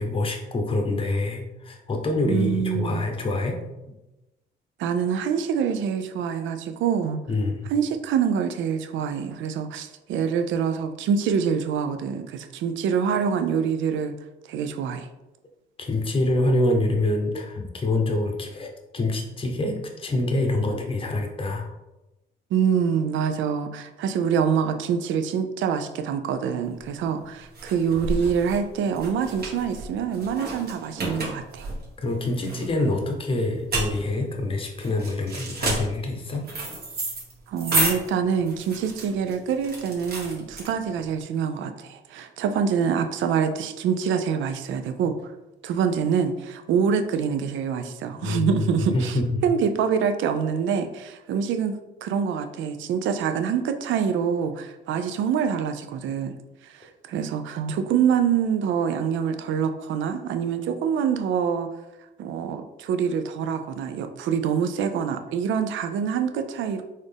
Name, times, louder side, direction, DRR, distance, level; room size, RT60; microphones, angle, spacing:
voice 1, 0.0-3.6 7.3-7.7 15.8-21.7 32.0-36.4 48.2-48.6 48.9-49.3, left 2 dB, 25° left, 3 dB, 0.7 m, -26 dB
voice 2, 2.3-3.0 4.8-7.2 7.7-14.1 14.5-15.1 22.5-31.7 37.5-45.3 45.6-51.8 52.0-56.3 56.6-61.7 62.2-66.8, right 7 dB, 75° right, 8 dB, 0.4 m, -25 dB
sound 1, 26.7-41.1, right 2 dB, 50° right, 1.3 m, -31 dB
4.0 x 2.5 x 3.3 m, 0.98 s
cardioid pair, 90°, 20 cm